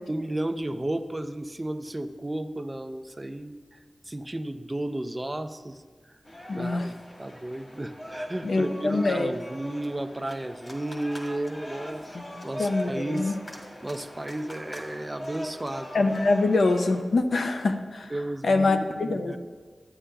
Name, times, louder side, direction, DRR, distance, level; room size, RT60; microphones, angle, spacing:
voice 1, 0.1-3.8 4.1-5.8 6.5-13.4 13.8-15.9 18.1-19.4, right 1 dB, 20° right, 9 dB, 0.5 m, -33 dB
sound 1, 6.2-17.0, equal, 40° left, 1.7 m, -40 dB
voice 2, 6.5-6.9 8.4-9.3 12.1-13.3 15.9-18.1 18.4-19.4, left 3 dB, 80° left, 6 dB, 0.6 m, -25 dB
12.5 x 8.7 x 2.3 m, 1.5 s
wide cardioid pair, 80°, 0 cm